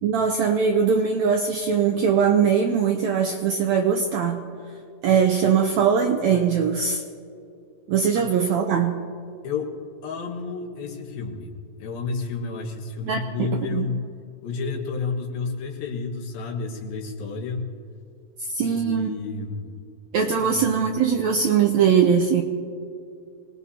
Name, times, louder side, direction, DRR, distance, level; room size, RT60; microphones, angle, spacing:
voice 1, 0.0-4.4 5.0-7.0 7.9-9.0 13.0-13.9 18.5-19.1 20.1-22.4, right 7 dB, 80° right, 4 dB, 1.6 m, -21 dB
voice 2, 10.0-14.0 14.4-17.7 18.6-19.7 20.4-20.7, left 4 dB, 85° left, 2 dB, 3.3 m, -31 dB
25.0 x 19.0 x 2.8 m, 2.4 s
omnidirectional pair, 4.1 m